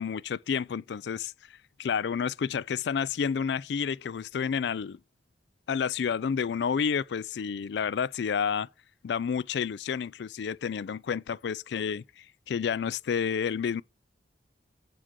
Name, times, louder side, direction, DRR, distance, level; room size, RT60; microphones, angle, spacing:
voice 1, 0.0-1.3 1.8-5.0 5.7-8.7 9.0-13.8, left 6 dB, 70° left, 0.3 m, -30 dB
7.8 x 3.7 x 6.1 m
head